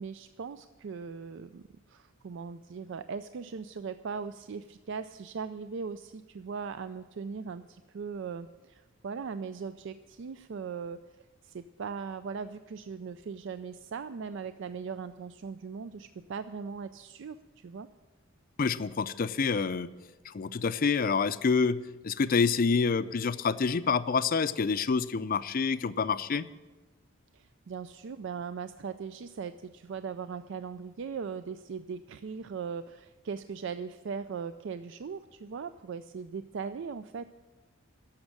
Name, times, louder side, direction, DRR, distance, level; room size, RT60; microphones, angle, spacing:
voice 1, 0.0-1.6 1.9-17.9 27.3-37.3, right 5 dB, 60° right, 11 dB, 0.4 m, -39 dB
voice 2, 18.6-19.9 20.2-21.8 22.0-26.5, left 5 dB, 45° left, 14 dB, 0.4 m, -27 dB
11.5 x 7.3 x 8.6 m, 1.2 s
head